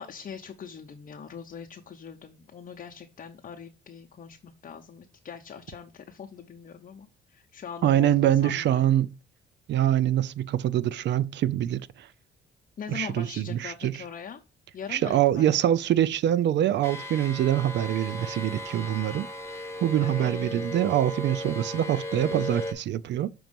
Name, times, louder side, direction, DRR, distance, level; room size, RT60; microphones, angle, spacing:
voice 1, 0.0-8.9 12.8-14.4 14.7-15.6 20.0-20.3, left 7 dB, 40° left, 0.7 m, -42 dB
voice 2, 7.8-9.1 9.7-12.1 12.9-14.0 14.9-19.3 19.8-23.3, right 11 dB, 65° right, 0.4 m, -24 dB
sound 1, 16.8-22.7, left 1 dB, 15° left, 1.0 m, -36 dB
6.2 x 3.0 x 5.1 m
cardioid pair, 90°, 20 cm